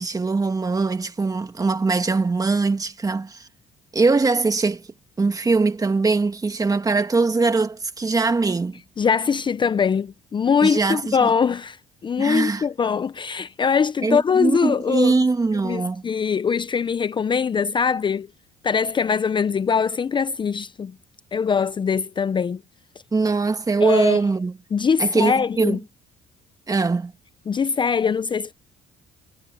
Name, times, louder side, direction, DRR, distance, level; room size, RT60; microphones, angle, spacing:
voice 1, 0.0-3.5 3.9-4.8 5.2-8.8 10.6-11.3 12.2-12.6 14.0-16.0 23.1-24.5 25.0-25.8 26.7-27.1, right 3 dB, 20° right, 2.0 m, -21 dB
voice 2, 9.0-15.2 15.6-18.3 18.6-21.0 21.3-22.6 23.8-24.2 24.7-25.8 27.5-28.5, left 6 dB, 30° left, 0.6 m, -22 dB
cardioid pair, 110°, 17 cm